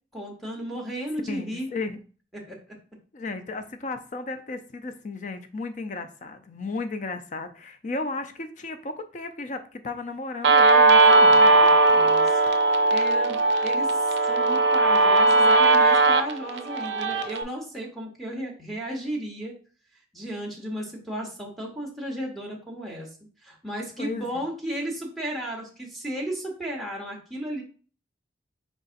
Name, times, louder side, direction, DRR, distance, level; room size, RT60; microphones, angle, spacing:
voice 1, 0.1-1.7 2.3-2.6 11.0-19.6 20.1-23.1 23.4-27.6, right 1 dB, ahead, -2 dB, 1.0 m, -34 dB
voice 2, 1.3-2.0 3.1-11.5 24.0-24.4, left 3 dB, 40° left, 8 dB, 0.5 m, -34 dB
Guitar, 10.4-17.4, right 3 dB, 70° right, 0.5 m, -18 dB
4.7 x 4.0 x 2.5 m, 0.39 s
head